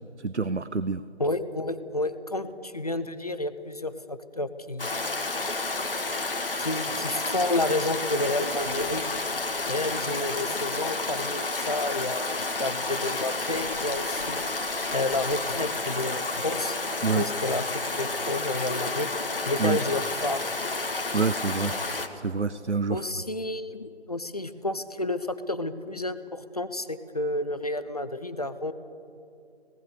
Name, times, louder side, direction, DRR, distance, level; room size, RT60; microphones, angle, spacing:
voice 1, 0.2-1.0 17.0-17.3 19.6-19.8 21.1-21.8 22.2-23.1, right 4 dB, 90° right, 14 dB, 0.8 m, -27 dB
voice 2, 1.2-4.9 6.6-9.1 9.7-14.4 14.9-16.8 17.1-19.1 19.5-20.4 22.9-28.7, left 2 dB, 35° left, 12 dB, 0.8 m, -30 dB
Stream, 4.8-22.1, left 3 dB, 55° left, 2.0 m, -30 dB
25.5 x 18.5 x 6.8 m, 2.4 s
figure-of-eight pair, 160°, 33 cm